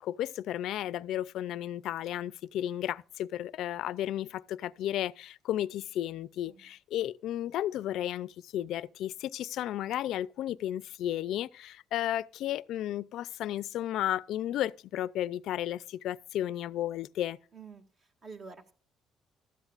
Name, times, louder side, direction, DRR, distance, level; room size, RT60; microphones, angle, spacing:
voice 1, 0.0-17.4, left 12 dB, 80° left, 0.4 m, -33 dB
voice 2, 17.5-18.7, right 4 dB, 45° right, 2.0 m, -49 dB
16.0 x 13.0 x 2.5 m
cardioid pair, 110°, 0 cm